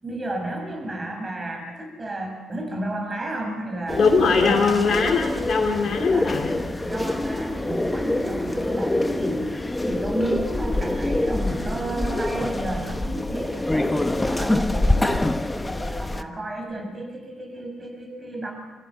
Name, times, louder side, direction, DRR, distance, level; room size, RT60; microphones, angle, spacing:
voice 1, 0.0-4.1 4.3-5.0 6.1-6.4 6.8-9.5 9.8-15.3 15.6-18.5, right 1 dB, 30° right, 4 dB, 5.8 m, -32 dB
sound 1, 3.9-16.2, left 1 dB, 15° left, 1.3 m, -25 dB
voice 2, 4.0-6.6, left 4 dB, 55° left, -1 dB, 2.8 m, -21 dB
25.0 x 15.0 x 7.3 m, 1.3 s
supercardioid pair, 60°, 0 cm